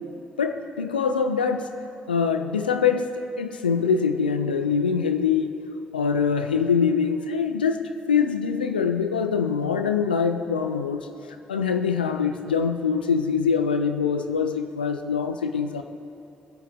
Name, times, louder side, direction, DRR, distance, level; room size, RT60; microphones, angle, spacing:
voice 1, 0.4-1.7 2.1-3.1 3.4-5.6 5.9-11.1 11.5-15.8, left 6 dB, 90° left, 7 dB, 0.5 m, -24 dB
23.0 x 8.1 x 3.7 m, 2.9 s
hypercardioid pair, 45°, 5 cm